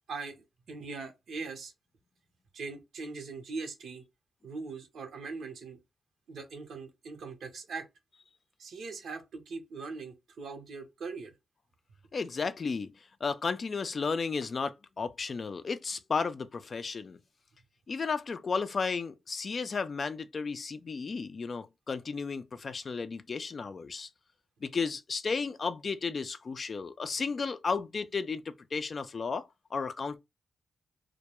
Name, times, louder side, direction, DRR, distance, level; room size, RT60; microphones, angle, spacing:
voice 1, 0.7-1.7 2.5-4.0 4.4-5.8 6.3-7.9 8.6-11.3, right 4 dB, 80° right, 0.7 m, -41 dB
voice 2, 12.1-12.9 13.2-17.2 17.9-24.1 24.6-30.2, left 5 dB, 50° left, 0.3 m, -33 dB
2.2 x 2.1 x 2.9 m
cardioid pair, 80°, 0 cm